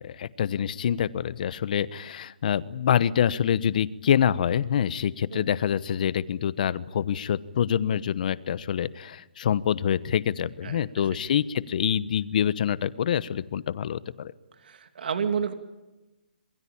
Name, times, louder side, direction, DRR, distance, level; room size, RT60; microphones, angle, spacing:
voice 1, 0.0-14.3, left 9 dB, 55° left, 16 dB, 1.1 m, -26 dB
voice 2, 10.6-11.1 14.5-15.5, right 6 dB, 70° right, 7 dB, 2.7 m, -31 dB
27.0 x 21.0 x 8.8 m, 1.1 s
hypercardioid pair, 155°, 5 cm